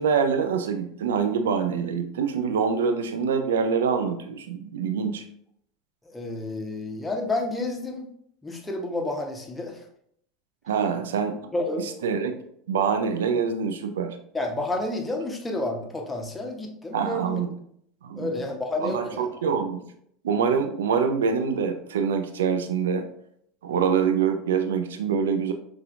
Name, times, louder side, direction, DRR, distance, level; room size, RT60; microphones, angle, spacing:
voice 1, 0.0-5.2 10.7-11.5 12.0-12.3 12.7-14.2 16.9-17.5 18.0-18.3 18.8-19.8 20.2-23.0 23.6-25.5, right 6 dB, 70° right, 7 dB, 0.4 m, -25 dB
voice 2, 6.1-8.1 8.4-9.8 11.5-11.9 14.3-17.4 18.2-19.3, left 2 dB, 10° left, 2 dB, 0.7 m, -30 dB
5.5 x 2.4 x 2.4 m, 0.68 s
figure-of-eight pair, 75°, 0 cm